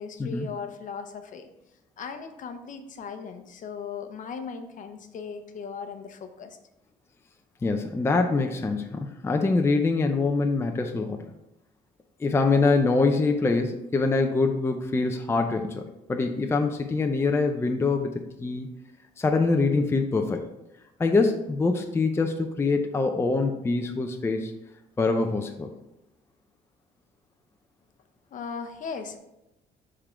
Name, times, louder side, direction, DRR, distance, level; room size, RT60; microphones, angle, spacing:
voice 1, 0.0-1.5 2.0-6.6 28.3-29.2, left 5 dB, 50° left, 7 dB, 0.8 m, -37 dB
voice 2, 7.6-11.2 12.2-15.8 16.1-18.1 18.4-18.7 19.2-20.4 21.0-24.5 25.0-25.7, left 3 dB, 15° left, 4 dB, 0.5 m, -24 dB
6.8 x 3.7 x 4.4 m, 0.89 s
cardioid pair, 110°, 17 cm